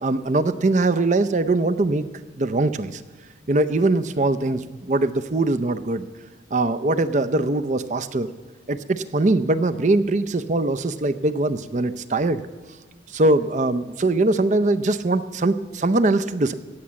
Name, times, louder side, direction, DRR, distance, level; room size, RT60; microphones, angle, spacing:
voice 1, 0.0-2.1 2.4-3.0 3.5-6.0 6.5-8.3 8.7-12.4 13.1-16.5, right 2 dB, 40° right, 12 dB, 0.5 m, -22 dB
17.5 x 7.0 x 7.5 m, 1.3 s
head